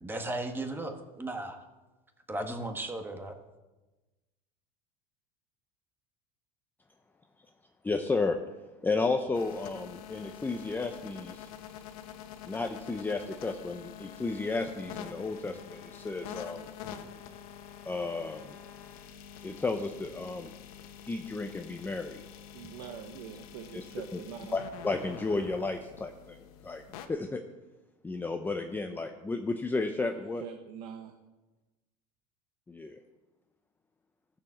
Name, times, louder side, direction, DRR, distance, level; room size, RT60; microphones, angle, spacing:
voice 1, 0.0-1.6 2.3-3.3, right 2 dB, 10° right, 5 dB, 1.4 m, -36 dB
voice 2, 7.8-8.4 8.8-11.5 12.4-16.7 17.8-18.6 19.4-20.5 21.1-22.2 22.8-22.9 23.7-23.8 24.1-24.2 24.5-26.8 27.1-27.4 28.0-30.4 32.7-33.0, left 3 dB, 10° left, 5 dB, 0.7 m, -33 dB
sound 1, 9.3-27.1, left 9 dB, 90° left, 1.3 m, -46 dB
voice 3, 22.5-24.6 30.0-31.1, right 8 dB, 85° right, 6 dB, 1.1 m, -44 dB
14.0 x 7.2 x 7.3 m, 1.1 s
supercardioid pair, 130°, 18 cm